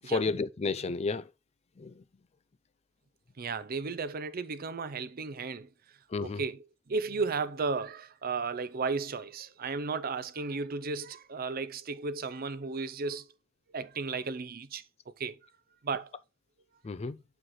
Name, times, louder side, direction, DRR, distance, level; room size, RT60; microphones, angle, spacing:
voice 1, 0.1-1.3 1.8-2.0 6.1-6.4 16.8-17.2, left 4 dB, 30° left, 0.4 m, -31 dB
voice 2, 3.4-5.7 6.2-13.3 13.7-15.4 15.8-16.1, right 4 dB, 50° right, 0.6 m, -34 dB
7.9 x 4.6 x 3.7 m
head